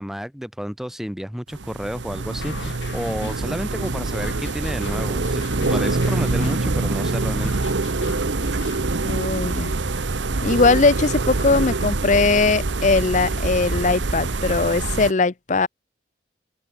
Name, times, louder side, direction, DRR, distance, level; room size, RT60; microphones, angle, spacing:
voice 1, 0.0-5.4 5.7-7.5, equal, ahead, 0.6 m, -31 dB
sound 1, 1.5-15.1, right 3 dB, 90° right, 1.0 m, -25 dB
sound 2, 2.4-8.8, left 3 dB, 90° left, 2.4 m, -39 dB
voice 2, 9.0-9.7 10.4-15.7, left 3 dB, 40° left, 0.6 m, -20 dB
head